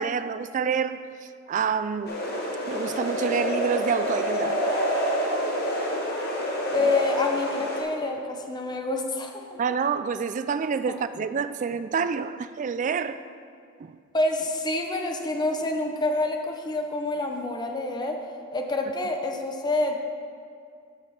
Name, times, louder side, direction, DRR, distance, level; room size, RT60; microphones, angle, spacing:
voice 1, 0.0-2.1 2.7-4.6 6.8-6.9 9.6-13.2 13.8-14.0, right 6 dB, 40° right, 0.3 m, -28 dB
sound 1, 2.1-7.8, equal, 50° left, 1.6 m, -27 dB
voice 2, 6.7-9.4 10.9-11.0 14.1-18.2 18.5-20.0, left 2 dB, 20° left, 0.7 m, -27 dB
9.4 x 5.3 x 5.7 m
head